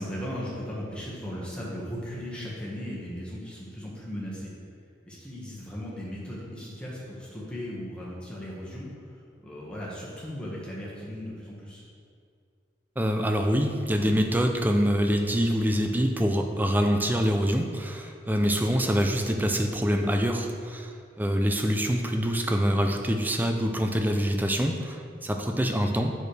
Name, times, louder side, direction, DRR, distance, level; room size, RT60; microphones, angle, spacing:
voice 1, 0.0-4.5 5.1-11.8 18.8-19.0, equal, 5° left, -6 dB, 1.5 m, -37 dB
voice 2, 13.0-20.9 21.2-26.1, equal, 10° right, 4 dB, 0.4 m, -25 dB
8.8 x 6.3 x 3.4 m, 2.3 s
head